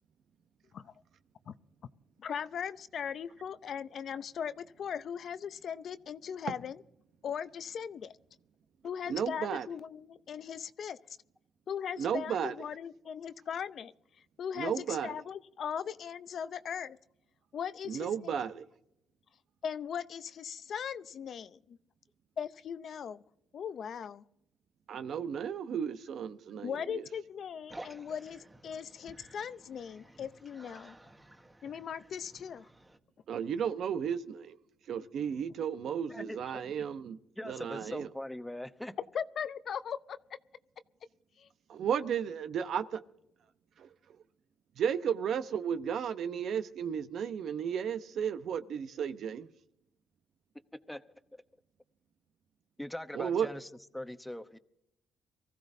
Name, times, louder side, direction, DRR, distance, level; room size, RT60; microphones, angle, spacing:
voice 1, 2.2-6.8 7.2-8.2 8.8-11.0 11.7-13.9 14.4-17.0 17.5-18.4 19.6-21.8 22.4-23.2 23.5-24.2 26.6-31.0 31.6-32.7 39.1-40.2 41.4-41.5, left 8 dB, 60° left, 0.6 m, -39 dB
voice 2, 9.0-9.7 12.0-12.5 14.6-15.1 17.9-18.6 24.9-27.0 33.3-34.6 34.9-37.2 37.4-38.1 41.7-43.0 43.8-43.9 44.8-49.5 53.1-53.5, right 8 dB, 70° right, 0.8 m, -34 dB
sound 1, 27.7-33.0, right 1 dB, 10° right, 1.4 m, -53 dB
voice 3, 36.1-36.4 37.4-38.9 50.9-51.0 51.3-51.4 52.8-53.7 53.9-54.6, left 1 dB, 5° left, 0.9 m, -41 dB
24.0 x 15.0 x 2.7 m
cardioid pair, 90°, 0 cm